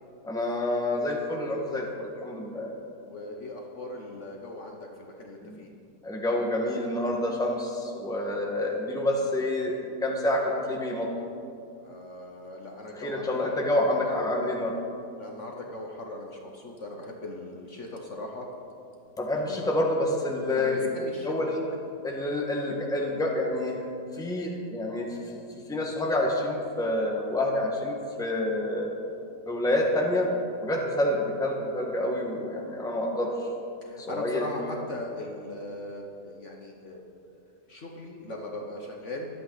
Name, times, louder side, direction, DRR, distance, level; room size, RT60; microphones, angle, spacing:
voice 1, 0.2-2.7 5.4-5.6 6.0-11.1 12.9-14.7 19.2-20.9 21.2-21.5 22.0-23.8 24.1-25.4 25.7-28.9 29.5-30.3 30.6-33.3 34.0-34.5, left 1 dB, ahead, 0 dB, 1.3 m, -28 dB
voice 2, 3.0-5.7 11.8-13.5 14.1-14.5 15.2-18.5 19.4-19.9 20.5-21.5 33.8-37.0 37.3-37.4 37.7-39.3, left 1 dB, 50° left, 0 dB, 1.3 m, -39 dB
23.5 x 8.5 x 4.0 m, 2.6 s
omnidirectional pair, 1.8 m